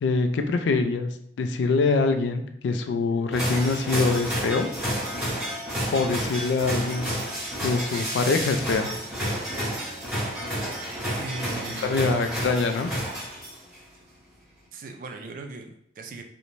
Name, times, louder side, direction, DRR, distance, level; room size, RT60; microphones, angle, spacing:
voice 1, 0.0-1.1 1.4-4.7 5.9-7.1 7.6-9.0 11.8-12.9, left 4 dB, 85° left, 7 dB, 0.3 m, -24 dB
sound 1, 3.3-13.7, equal, 5° right, 0.8 m, -30 dB
voice 2, 11.2-12.3 14.7-16.2, right 2 dB, 50° right, 4 dB, 0.3 m, -38 dB
2.5 x 2.1 x 3.0 m, 0.70 s
head